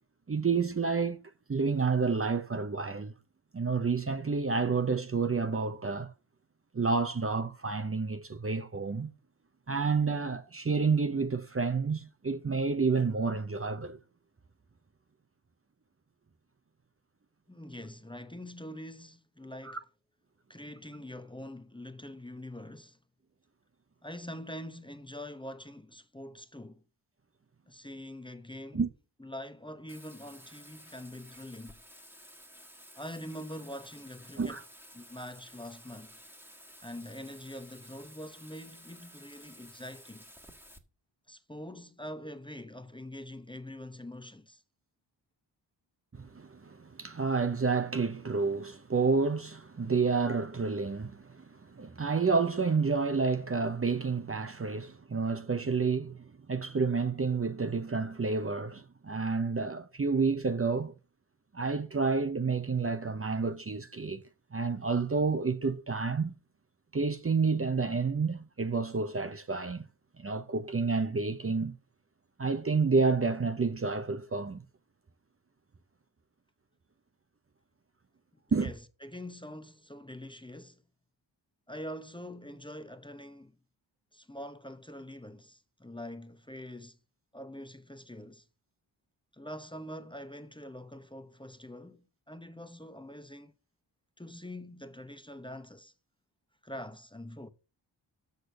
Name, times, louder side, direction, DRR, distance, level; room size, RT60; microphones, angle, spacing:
voice 1, 0.3-1.2 1.5-3.1 3.5-6.1 6.7-9.1 9.7-14.0 19.6-19.8 28.7-28.9 34.4-34.6 46.1-60.9 61.5-64.2 64.5-66.3 66.9-69.8 70.2-71.7 72.4-74.6 78.5-78.7, right 4 dB, 30° right, 0.8 m, -29 dB
voice 2, 17.5-19.8 20.5-23.0 24.0-26.8 27.7-28.8 29.2-31.8 32.9-34.6 34.9-36.2 36.8-40.2 41.3-44.6 78.6-80.8 81.7-83.6 84.1-87.0 87.3-88.5 89.3-93.5 94.2-95.9 96.6-97.5, left 1 dB, 10° left, 0.9 m, -44 dB
Bathtub (filling or washing), 29.9-40.8, equal, 5° right, 1.6 m, -53 dB
6.6 x 6.4 x 6.5 m
cardioid pair, 55°, 47 cm